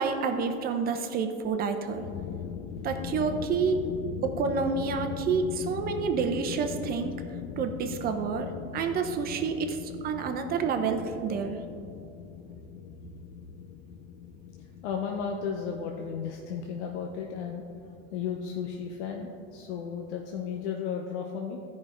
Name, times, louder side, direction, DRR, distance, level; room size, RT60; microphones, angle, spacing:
voice 1, 0.0-2.1 2.8-3.8 4.4-7.2 7.5-11.6, right 5 dB, 25° right, 6 dB, 0.7 m, -29 dB
sound 1, 1.8-20.7, left 8 dB, 45° left, 0.6 m, -41 dB
voice 2, 14.8-17.6 18.1-21.6, left 6 dB, 90° left, 1 dB, 0.9 m, -34 dB
14.5 x 5.3 x 3.5 m, 2.6 s
supercardioid pair, 140°, 33 cm